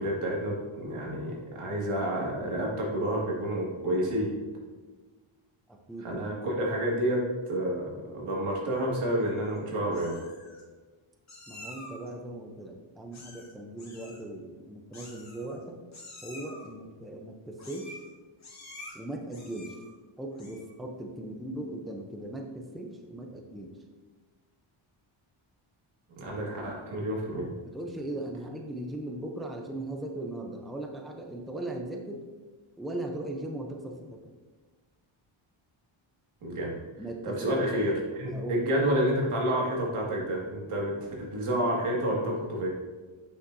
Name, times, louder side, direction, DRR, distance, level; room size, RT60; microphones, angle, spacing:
voice 1, 0.0-4.3 6.0-10.2 26.2-27.5 36.4-36.8 37.2-42.7, right 1 dB, 85° right, -3 dB, 2.1 m, -29 dB
voice 2, 5.7-6.3 11.5-15.8 16.2-18.0 18.9-19.8 20.2-23.8 26.2-26.4 27.6-32.3 32.8-34.2 37.0-37.6 38.3-38.7, right 1 dB, ahead, 1 dB, 0.5 m, -38 dB
Meow, 9.2-9.6 9.9-10.6 11.3-12.1 13.1-13.5 13.8-14.2 14.9-15.6 15.9-16.7 17.6-18.1 18.4-18.9 19.3-19.9 20.3-20.7, left 2 dB, 35° left, 1.7 m, -48 dB
8.2 x 6.4 x 2.6 m, 1.3 s
wide cardioid pair, 140°, 50 cm